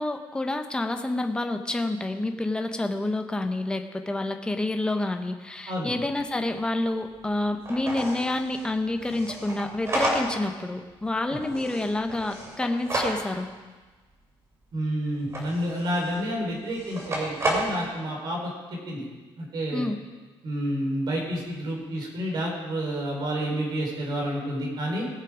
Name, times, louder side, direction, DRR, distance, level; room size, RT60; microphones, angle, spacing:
voice 1, 0.0-13.5 19.7-20.0, left 2 dB, 10° left, 6 dB, 0.9 m, -28 dB
sound 1, 6.1-6.2 6.5-6.6 7.2-7.3 7.6-10.6 10.9-13.5 15.1-16.2 16.7-17.8, right 1 dB, 30° right, 3.4 m, -31 dB
voice 2, 14.7-19.0 19.4-19.9 20.4-25.0, equal, 45° right, -1 dB, 4.4 m, -29 dB
20.0 x 7.5 x 5.0 m, 1.3 s
cardioid pair, 150°, 10 cm